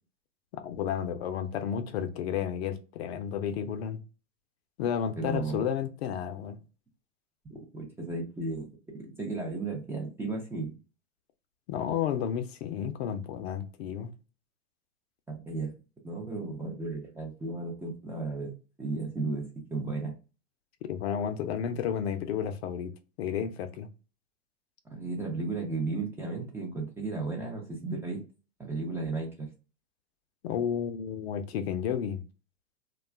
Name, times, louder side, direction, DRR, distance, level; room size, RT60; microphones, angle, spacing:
voice 1, 0.6-4.0 4.8-6.6 11.7-14.1 20.8-22.9 23.2-23.9 30.4-32.2, left 8 dB, 60° left, 0.5 m, -32 dB
voice 2, 5.2-5.7 7.5-8.7 8.9-10.8 15.3-15.8 16.0-18.5 18.8-20.2 24.9-28.2 28.6-29.5, right 3 dB, 5° right, 0.4 m, -34 dB
2.3 x 2.2 x 3.3 m
hypercardioid pair, 110°, 37 cm